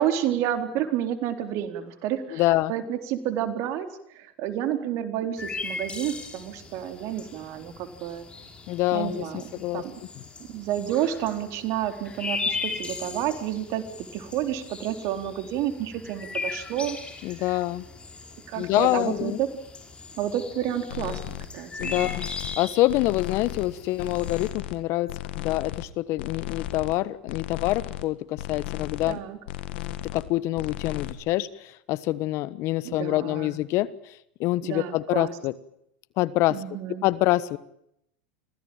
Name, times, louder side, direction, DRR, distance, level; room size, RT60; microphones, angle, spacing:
voice 1, 0.0-8.2 8.9-10.0 10.5-17.0 17.3-17.6 18.5-19.5 20.2-22.2 29.1-29.4 32.8-33.6 34.6-35.4 36.5-37.0, right 11 dB, 50° right, 8 dB, 4.0 m, -30 dB
voice 2, 2.3-2.7 8.7-9.8 17.2-17.8 18.6-19.4 21.8-22.3 22.6-29.2 30.1-33.9 34.4-35.5 36.2-36.6 37.0-37.6, left 17 dB, 50° left, 18 dB, 1.2 m, -26 dB
sound 1, 5.4-24.5, left 4 dB, 20° left, 5.0 m, -38 dB
sound 2, 20.9-21.5 21.8-22.6 22.9-23.7 24.0-24.8 25.1-25.9 26.2-27.0 27.3-28.0 28.4-29.2 29.5-30.3 30.6-31.1, left 14 dB, 70° left, 1.9 m, -35 dB
25.5 x 17.0 x 8.9 m, 0.75 s
hypercardioid pair, 105°, 6 cm